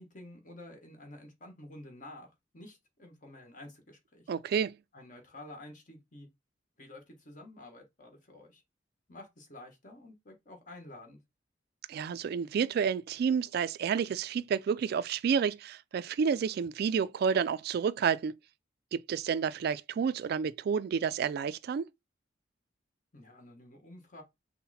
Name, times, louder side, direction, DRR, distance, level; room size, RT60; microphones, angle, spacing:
voice 1, 0.0-4.3 4.9-6.3 6.8-8.6 9.1-11.2 23.1-24.2, left 1 dB, 45° left, 1.4 m, -50 dB
voice 2, 4.3-4.8 11.9-18.3 18.9-21.9, right 6 dB, 55° right, 0.3 m, -30 dB
5.6 x 2.1 x 4.2 m
head